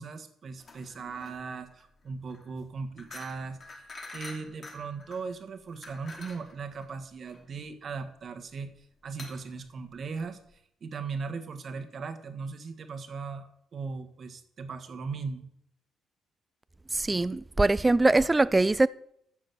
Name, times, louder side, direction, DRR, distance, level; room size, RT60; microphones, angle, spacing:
voice 1, 0.0-10.4 10.8-15.5, right 4 dB, 40° right, 1.5 m, -38 dB
sound 1, 0.6-10.6, left 3 dB, 30° left, 2.5 m, -48 dB
voice 2, 16.9-18.9, right 2 dB, 15° right, 0.3 m, -22 dB
12.5 x 7.5 x 6.9 m
cardioid pair, 145°, 0 cm